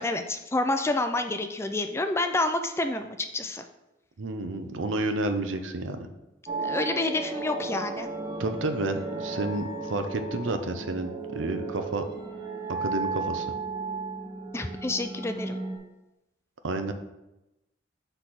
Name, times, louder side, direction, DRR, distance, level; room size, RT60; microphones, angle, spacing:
voice 1, 0.0-3.6 6.6-8.1 14.5-15.6, left 2 dB, 15° left, 7 dB, 0.3 m, -28 dB
voice 2, 4.2-6.1 8.4-12.0 12.7-13.5 16.6-16.9, right 2 dB, 85° right, 7 dB, 0.7 m, -30 dB
sound 1, 6.5-15.8, right 4 dB, 20° right, 0.7 m, -34 dB
6.1 x 3.4 x 5.8 m, 0.95 s
head